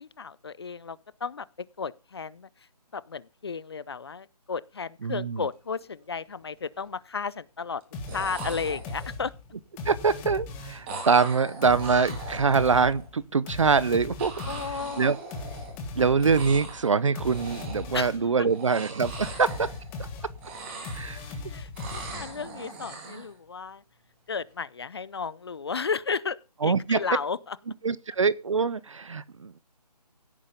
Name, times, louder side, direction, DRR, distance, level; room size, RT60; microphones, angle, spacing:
voice 1, 0.0-1.5 1.8-2.5 2.9-7.8 8.1-9.3 14.4-15.1 17.9-18.1 18.4-18.5 21.5-23.8 24.3-27.6, left 5 dB, 40° left, 0.7 m, -33 dB
voice 2, 5.0-5.4 9.8-14.3 15.0-15.2 16.0-19.7 20.9-21.2 26.6-27.0 27.8-29.6, right 5 dB, 50° right, 0.8 m, -24 dB
sound 1, 5.6-5.8 6.2-6.8 7.8-7.9 8.1-9.3 10.9-13.1 14.2-15.9 16.2-16.9 17.2-18.0 18.4-20.1 20.4-21.4 21.8-23.3, right 3 dB, 15° right, 3.3 m, -41 dB
sound 2, 7.9-11.0 11.6-18.4 19.0-22.5, left 3 dB, 10° left, 1.2 m, -39 dB
16.5 x 8.8 x 5.2 m
figure-of-eight pair, 165°, 21 cm